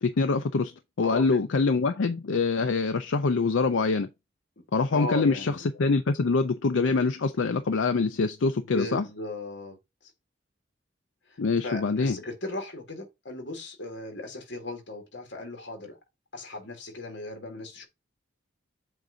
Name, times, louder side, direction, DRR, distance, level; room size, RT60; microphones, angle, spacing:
voice 1, 0.0-0.7 1.0-4.1 4.7-9.0 11.4-12.2, left 4 dB, 85° left, 0.5 m, -25 dB
voice 2, 1.0-1.5 4.9-5.6 8.6-9.8 11.3-16.0 16.3-17.9, left 2 dB, 70° left, 1.9 m, -37 dB
7.8 x 2.6 x 4.9 m
head